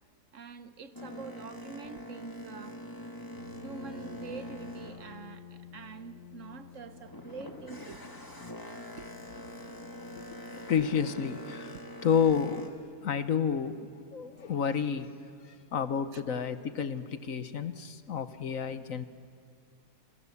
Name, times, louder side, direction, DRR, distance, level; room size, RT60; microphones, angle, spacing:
voice 1, 0.3-2.8 3.6-8.0 8.4-9.1 9.4-9.5 16.1-16.2, right 5 dB, 55° right, 10 dB, 1.1 m, -46 dB
Boat Water vehicle, 0.9-6.0 6.4-12.7, equal, 15° left, 1.7 m, -44 dB
sound 1, 3.4-16.7, left 7 dB, 85° left, 1.6 m, -54 dB
voice 2, 9.6-11.8 12.0-15.1 15.4-19.1, left 7 dB, 60° left, 11 dB, 1.3 m, -31 dB
30.0 x 25.0 x 7.1 m, 2.2 s
omnidirectional pair, 1.7 m